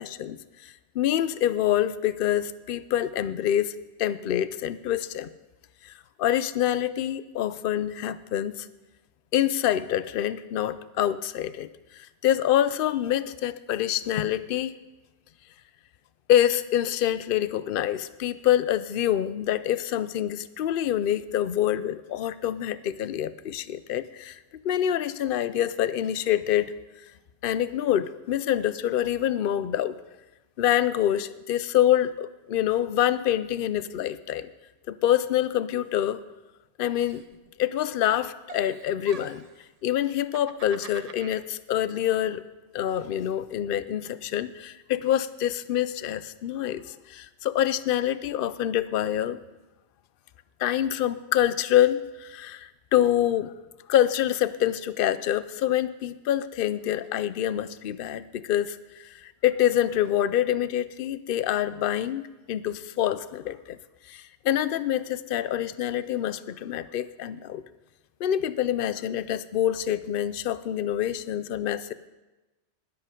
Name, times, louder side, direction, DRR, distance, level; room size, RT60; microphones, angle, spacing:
voice 1, 0.0-5.3 5.8-5.9 6.2-8.7 9.3-14.7 16.3-26.7 27.4-30.0 30.6-34.5 34.9-36.2 36.8-37.2 37.6-39.4 39.8-42.4 42.7-49.4 50.6-53.5 53.9-62.2 62.5-63.8 64.1-67.6 68.2-71.9, left 11 dB, 60° left, 15 dB, 0.7 m, -26 dB
Giggle, 37.0-37.8 38.1-39.6 40.1-41.4, right 6 dB, 45° right, 0.6 m, -45 dB
20.5 x 7.9 x 5.2 m, 1.1 s
omnidirectional pair, 1.2 m